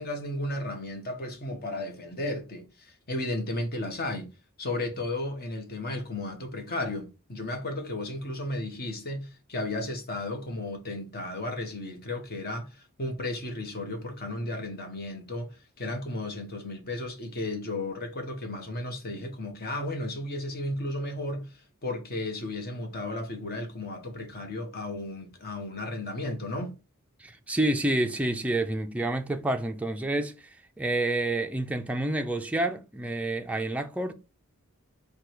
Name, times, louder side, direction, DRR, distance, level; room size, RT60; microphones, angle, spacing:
voice 1, 0.0-4.3 4.6-15.5 15.8-26.7, left 1 dB, 45° left, 1.1 m, -34 dB
voice 2, 27.2-30.5 30.8-34.1, right 1 dB, 5° right, 0.4 m, -28 dB
4.6 x 2.3 x 4.7 m
head